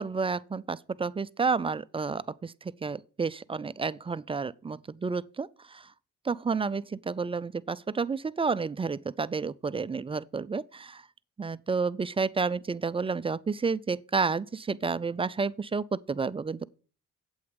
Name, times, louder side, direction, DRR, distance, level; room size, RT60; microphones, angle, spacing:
voice 1, 0.0-5.9 6.2-11.0 11.4-16.7, right 4 dB, 20° right, 0.4 m, -30 dB
8.5 x 8.1 x 5.1 m
cardioid pair, 90°, 30 cm